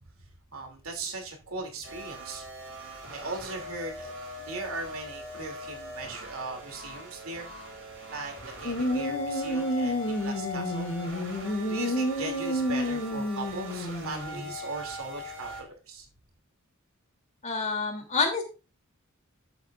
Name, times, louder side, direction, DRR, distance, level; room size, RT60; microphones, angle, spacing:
voice 1, 0.5-2.4 2.9-4.1 4.4-7.5 8.1-8.3 8.6-10.9 11.7-16.1, right 3 dB, 80° right, 2 dB, 2.9 m, -38 dB
sound 1, 1.8-15.6, left 1 dB, 65° right, 3.8 m, -41 dB
sound 2, 8.6-14.5, equal, 55° left, 2.3 m, -30 dB
voice 2, 17.4-18.4, left 4 dB, 35° left, 2 dB, 3.0 m, -27 dB
13.0 x 8.1 x 2.5 m, 0.31 s
head